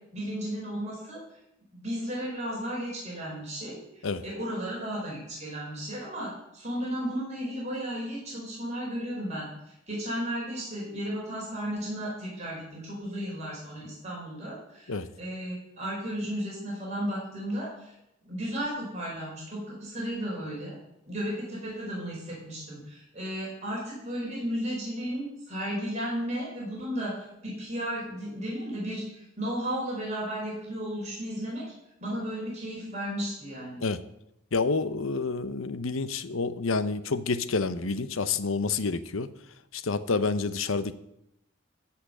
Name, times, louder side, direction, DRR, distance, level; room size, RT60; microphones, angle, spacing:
voice 1, 0.1-1.2 1.7-9.5 9.9-17.9 18.2-20.8 21.1-27.1 27.4-31.6 32.0-33.8, equal, 35° right, -4 dB, 4.8 m, -34 dB
voice 2, 34.5-39.3 39.7-40.9, left 4 dB, 85° left, 14 dB, 0.8 m, -28 dB
15.0 x 5.8 x 7.7 m, 0.83 s
head